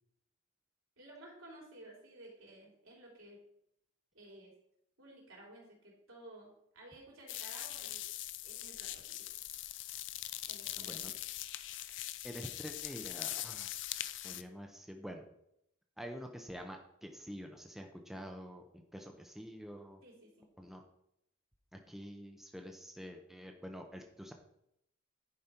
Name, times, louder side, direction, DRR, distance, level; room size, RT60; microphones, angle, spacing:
voice 1, 1.0-3.4 4.1-4.5 5.0-8.0 8.4-9.3 10.5-11.2 20.0-20.3, right 1 dB, 85° right, -3 dB, 3.3 m, -55 dB
sound 1, 7.3-14.4, left 14 dB, 60° left, 0.4 m, -42 dB
voice 2, 10.8-11.1 12.2-13.7 14.2-15.3 16.0-20.0 20.6-20.8 21.7-24.3, equal, ahead, 3 dB, 0.7 m, -47 dB
10.5 x 5.1 x 4.4 m, 0.77 s
head